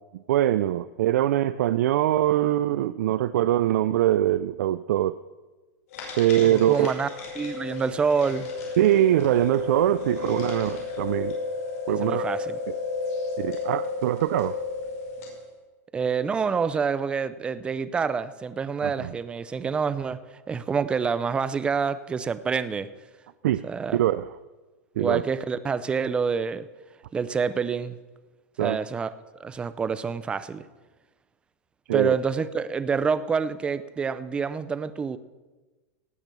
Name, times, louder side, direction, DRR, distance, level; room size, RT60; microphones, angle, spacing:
voice 1, 0.3-5.2 6.2-6.9 8.8-11.4 11.9-12.2 13.4-14.6 18.8-19.1 23.4-23.7 23.9-24.3 25.0-25.2 28.6-28.8 31.9-32.1, right 13 dB, 80° right, 0.4 m, -23 dB
sound 1, 5.9-15.4, left 4 dB, 70° left, 5.1 m, -33 dB
voice 2, 6.4-7.1 7.4-8.5 12.0-12.6 15.9-20.2 20.5-22.9 23.6-24.0 25.0-26.7 27.1-28.0 28.6-29.1 29.4-30.6 31.9-35.2, right 5 dB, 10° right, 0.4 m, -27 dB
18.0 x 6.0 x 6.8 m
supercardioid pair, 155°, 8 cm